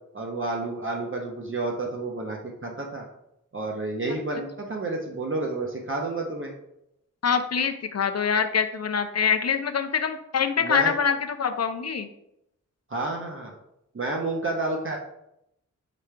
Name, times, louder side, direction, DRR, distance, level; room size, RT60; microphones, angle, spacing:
voice 1, 0.1-3.0 3.5-6.5 10.6-10.9 12.9-13.5 13.9-15.0, right 2 dB, 40° right, 0 dB, 0.8 m, -30 dB
voice 2, 7.2-12.1, left 6 dB, 55° left, 8 dB, 0.5 m, -25 dB
4.9 x 2.3 x 4.4 m, 0.81 s
cardioid pair, 55°, 32 cm